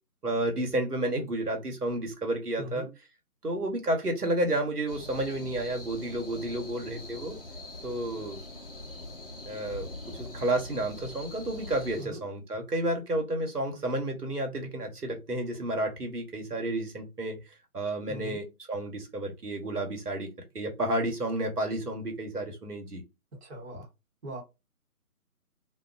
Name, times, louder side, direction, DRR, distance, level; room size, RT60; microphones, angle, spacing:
voice 1, 0.2-2.9 3.4-7.4 7.8-8.4 9.5-17.4 17.7-23.0, right 1 dB, 85° right, 1.2 m, -31 dB
voice 2, 2.6-2.9 12.0-12.2 18.1-18.4 23.4-23.9 24.2-24.4, equal, 45° right, 1.0 m, -40 dB
sound 1, 4.9-12.1, left 2 dB, 40° left, 0.6 m, -42 dB
2.5 x 2.2 x 2.4 m
figure-of-eight pair, 150°, 45 cm